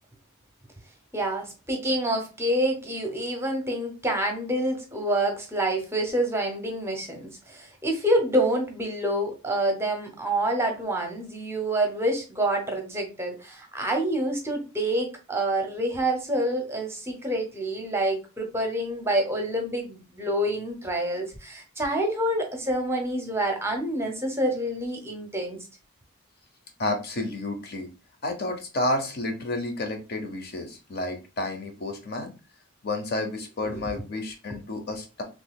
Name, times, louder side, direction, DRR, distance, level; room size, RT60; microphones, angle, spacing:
voice 1, 1.1-25.6 33.7-33.8, right 1 dB, 10° right, 3 dB, 0.7 m, -27 dB
voice 2, 26.8-27.9 28.2-32.3 32.8-35.2, left 2 dB, 50° left, 5 dB, 0.8 m, -30 dB
3.8 x 3.0 x 2.3 m, 0.30 s
head